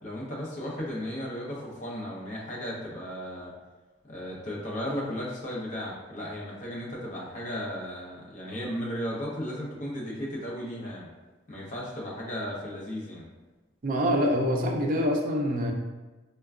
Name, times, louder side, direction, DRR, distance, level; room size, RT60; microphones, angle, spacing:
voice 1, 0.0-3.5 4.1-11.1 11.5-13.3, equal, 40° left, -4 dB, 0.8 m, -35 dB
voice 2, 13.8-15.7, equal, 45° right, 1 dB, 0.5 m, -25 dB
4.4 x 2.2 x 2.4 m, 1.2 s
head